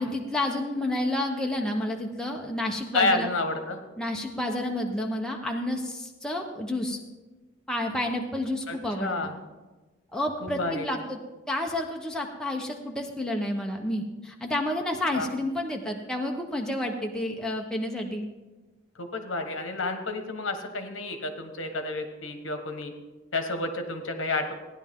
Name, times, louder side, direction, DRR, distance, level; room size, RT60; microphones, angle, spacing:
voice 1, 0.0-3.3 4.0-7.0 7.7-9.3 10.1-11.2 11.5-18.3, left 1 dB, 5° left, 0 dB, 0.8 m, -30 dB
voice 2, 2.9-3.8 8.7-9.3 10.6-10.9 15.1-15.3 19.0-22.9 23.3-24.5, left 2 dB, 70° left, 6 dB, 1.3 m, -30 dB
16.0 x 10.5 x 3.7 m, 1.2 s
head